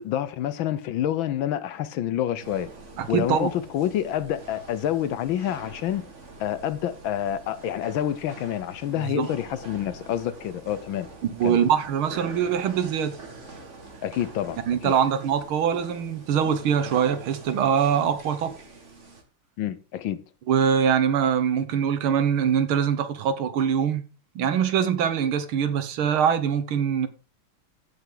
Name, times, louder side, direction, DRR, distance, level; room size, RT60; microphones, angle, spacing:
voice 1, 0.0-2.7 3.1-6.0 6.4-11.1 11.4-11.6 14.0-14.9 19.6-20.2, left 11 dB, 70° left, 1.4 m, -28 dB
sound 1, 2.4-19.2, right 3 dB, 35° right, 1.9 m, -44 dB
voice 2, 3.0-3.5 9.0-9.3 11.3-13.2 14.7-18.5 20.5-24.0 24.4-27.1, right 8 dB, 75° right, 1.9 m, -23 dB
15.5 x 5.7 x 3.8 m
omnidirectional pair, 2.4 m